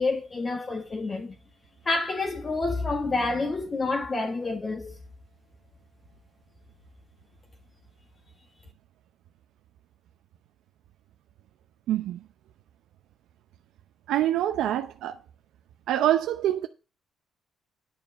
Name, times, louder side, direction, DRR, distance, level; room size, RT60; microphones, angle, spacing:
voice 1, 0.0-1.3 1.8-5.0, left 3 dB, 35° left, 1.4 m, -28 dB
voice 2, 11.9-12.2 14.1-15.2 15.9-16.7, right 12 dB, 85° right, 0.7 m, -25 dB
11.0 x 4.8 x 8.4 m
cardioid pair, 90°, 0 cm